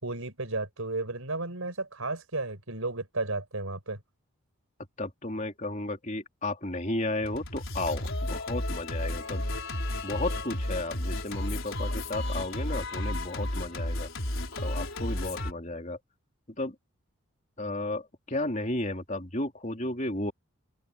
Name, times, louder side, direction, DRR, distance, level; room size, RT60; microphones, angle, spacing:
voice 1, 0.0-4.0, right 2 dB, 75° right, 4.7 m, -33 dB
voice 2, 5.0-9.4 10.0-14.1 14.6-16.0 16.6-16.8 17.6-20.3, left 2 dB, 35° left, 3.6 m, -33 dB
Singing, 7.2-15.5, left 1 dB, 65° left, 4.9 m, -33 dB
open air
head